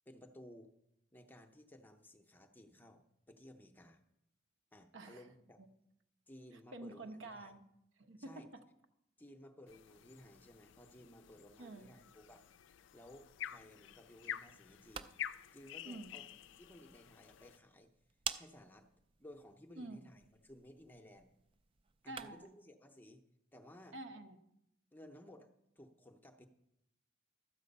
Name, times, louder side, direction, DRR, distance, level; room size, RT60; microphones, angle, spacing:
voice 1, 0.1-0.7 1.1-4.0 4.7-5.6 6.3-7.5 8.2-8.5 9.2-12.5 12.9-15.1 15.5-16.2 16.6-17.9 18.4-18.9 19.2-21.3 22.0-23.2 23.5-24.0 24.9-25.5 25.8-26.5, left 1 dB, 10° left, 6 dB, 0.6 m, -57 dB
voice 2, 6.7-7.6 8.0-8.6 11.6-11.9 15.8-16.2 19.8-20.1 22.1-22.5 23.9-24.4, right 2 dB, 65° right, 6 dB, 0.9 m, -48 dB
sound 1, 9.7-17.6, left 10 dB, 60° left, 0.4 m, -49 dB
sound 2, 14.6-22.6, right 7 dB, 25° right, 0.3 m, -50 dB
12.5 x 7.6 x 5.3 m, 0.82 s
head